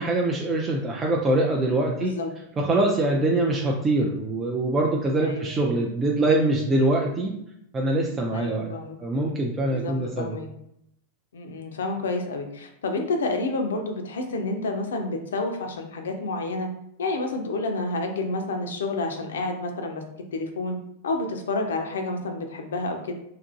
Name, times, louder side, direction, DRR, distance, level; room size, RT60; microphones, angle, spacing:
voice 1, 0.0-2.1 2.6-7.3 7.7-8.7 9.0-10.4, right 2 dB, 25° right, -1 dB, 0.4 m, -23 dB
voice 2, 1.9-2.3 3.3-3.5 5.2-5.6 8.3-9.0 9.6-10.5 11.3-16.7 17.0-20.0 20.3-20.8 21.0-23.1, left 2 dB, 80° left, 5 dB, 0.4 m, -29 dB
2.8 x 2.5 x 2.5 m, 0.76 s
hypercardioid pair, 100°, 0 cm